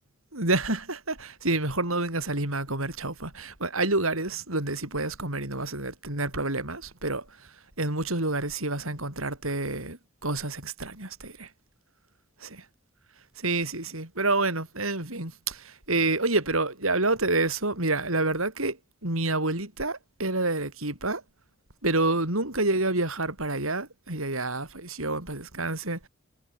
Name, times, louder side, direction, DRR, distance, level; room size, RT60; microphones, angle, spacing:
voice 1, 0.3-7.5 7.8-11.5 12.4-12.6 13.4-21.2 21.8-26.1, right 2 dB, 85° right, 7.2 m, -28 dB
head